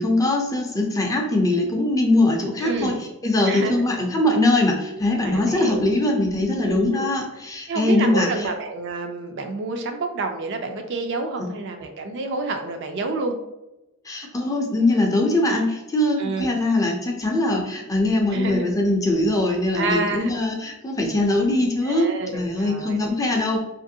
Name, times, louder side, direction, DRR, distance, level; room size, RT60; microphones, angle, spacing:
voice 1, 0.0-3.0 3.2-8.5 11.4-11.5 14.1-22.1 22.3-23.6, left 2 dB, 15° left, 0 dB, 0.4 m, -21 dB
voice 2, 2.6-3.0 3.4-3.8 5.2-5.8 6.5-7.0 7.7-13.4 16.2-16.5 18.3-18.7 19.7-20.4 21.8-23.0, right 2 dB, 55° right, 5 dB, 0.4 m, -28 dB
3.0 x 2.5 x 2.6 m, 0.95 s
head